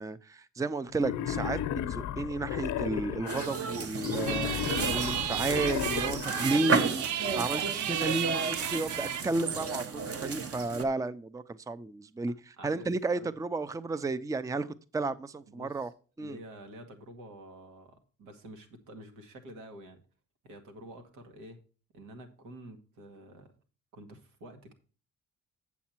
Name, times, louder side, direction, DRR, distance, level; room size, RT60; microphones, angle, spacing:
voice 1, 0.0-1.6 1.9-4.5 4.9-12.3 12.6-14.7 14.9-15.9 16.2-16.4, right 3 dB, 10° right, 0.5 m, -32 dB
Wild animals, 1.0-3.5 4.0-6.5, left 10 dB, 80° left, 0.8 m, -34 dB
sound 1, 3.3-10.8, right 4 dB, 50° right, 1.3 m, -33 dB
sound 2, 4.3-9.3, right 11 dB, 70° right, 0.7 m, -33 dB
voice 2, 12.6-12.9 13.2-13.3 15.5-15.9 16.2-20.0 20.4-21.6 21.9-23.5 23.9-24.7, right 1 dB, 90° right, 2.0 m, -49 dB
8.5 x 7.2 x 4.4 m
cardioid pair, 90°, 30 cm